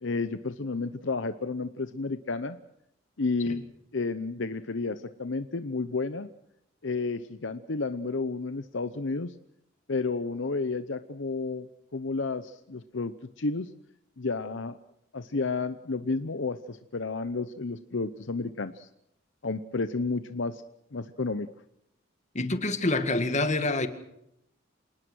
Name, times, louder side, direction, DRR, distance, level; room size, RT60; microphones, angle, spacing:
voice 1, 0.0-2.6 3.2-3.6 3.9-6.3 6.8-9.3 9.9-13.7 14.2-14.8 15.1-18.9 19.4-20.6 20.9-21.5, left 3 dB, 65° left, 11 dB, 0.8 m, -31 dB
voice 2, 22.3-23.9, left 2 dB, 35° left, 9 dB, 2.0 m, -26 dB
27.5 x 19.0 x 6.3 m, 0.79 s
head